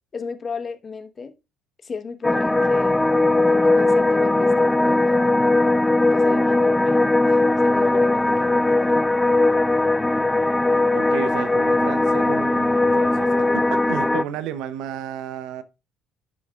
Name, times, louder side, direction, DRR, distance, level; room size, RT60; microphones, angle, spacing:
voice 1, 0.1-1.3 1.8-3.1 3.5-5.3 6.1-9.2, left 5 dB, 35° left, 1.2 m, -35 dB
sound 1, 2.2-14.2, left 2 dB, 15° left, 0.4 m, -19 dB
voice 2, 10.9-15.6, right 10 dB, 65° right, 0.7 m, -32 dB
11.0 x 6.2 x 2.4 m
hypercardioid pair, 55°, 0 cm